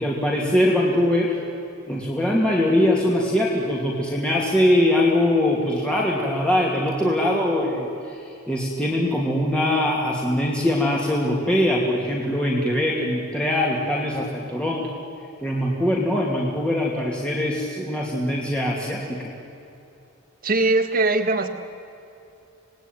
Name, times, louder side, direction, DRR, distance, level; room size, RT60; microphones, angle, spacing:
voice 1, 0.0-1.4 1.9-14.9 15.4-19.3, left 1 dB, 5° left, -3 dB, 2.6 m, -22 dB
voice 2, 20.4-21.5, right 2 dB, 40° right, 7 dB, 1.8 m, -20 dB
27.0 x 19.5 x 9.2 m, 2.8 s
head